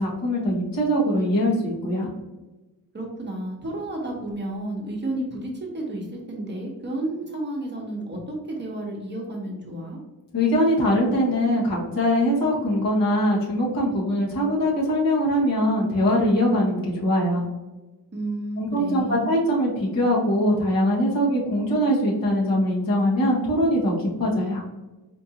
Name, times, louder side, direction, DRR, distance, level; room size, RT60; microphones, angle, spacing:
voice 1, 0.0-2.1 10.3-17.4 18.6-24.6, equal, 60° left, -5 dB, 1.4 m, -22 dB
voice 2, 2.9-10.0 18.1-19.3, right 1 dB, 30° right, -1 dB, 0.9 m, -31 dB
4.5 x 2.6 x 2.8 m, 1.1 s
wide cardioid pair, 125°, 38 cm